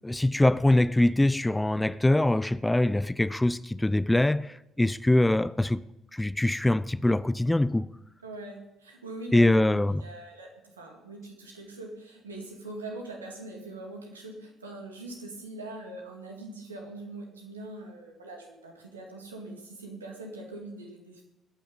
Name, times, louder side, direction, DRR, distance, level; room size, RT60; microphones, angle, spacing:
voice 1, 0.0-5.8 6.1-7.9 9.3-10.0, left 1 dB, 10° left, 0.5 m, -23 dB
voice 2, 8.2-21.2, right 2 dB, 80° right, 2.2 m, -42 dB
21.0 x 9.2 x 5.5 m
figure-of-eight pair, 45°, 0 cm